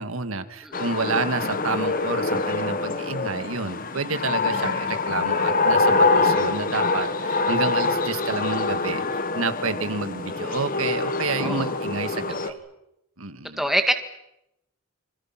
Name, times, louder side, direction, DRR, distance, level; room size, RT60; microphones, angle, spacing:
voice 1, 0.0-12.6 13.2-13.6, right 3 dB, 70° right, 9 dB, 1.9 m, -29 dB
sound 1, 0.7-12.5, left 3 dB, 40° left, 1.6 m, -25 dB
voice 2, 11.4-11.7 12.4-12.5 13.6-13.9, equal, ahead, 6 dB, 2.0 m, -25 dB
28.5 x 26.0 x 5.9 m, 0.84 s
head